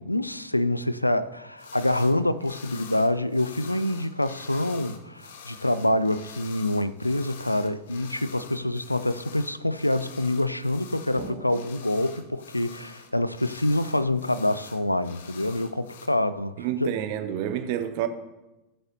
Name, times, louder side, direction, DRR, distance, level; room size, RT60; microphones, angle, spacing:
voice 1, 0.0-16.9, left 1 dB, 85° left, 0.4 m, -26 dB
sound 1, 1.6-2.2 2.4-16.1, left 7 dB, 60° left, 0.9 m, -46 dB
sound 2, 11.1-14.3, right 2 dB, 85° right, 2.7 m, -46 dB
voice 2, 16.6-18.1, right 10 dB, 45° right, 0.8 m, -28 dB
15.0 x 7.7 x 2.7 m
figure-of-eight pair, 90°, 0 cm